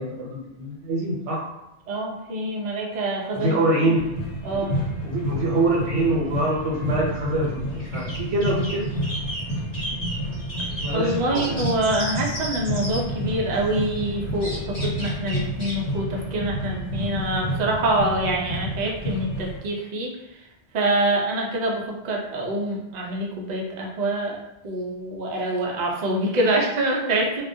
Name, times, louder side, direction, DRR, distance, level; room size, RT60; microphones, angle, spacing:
voice 1, 0.0-1.4 3.3-4.1 5.0-8.9 10.7-11.6, right 1 dB, 90° right, -4 dB, 0.9 m, -25 dB
voice 2, 1.9-4.0 4.4-4.8 10.9-20.1 20.7-27.4, right 1 dB, 55° right, -1 dB, 0.5 m, -25 dB
sound 1, 3.9-19.6, equal, 80° left, 0.9 m, -30 dB
sound 2, 7.7-13.0 14.4-15.8, equal, 35° left, 0.8 m, -34 dB
2.2 x 2.1 x 2.6 m, 0.89 s
omnidirectional pair, 1.2 m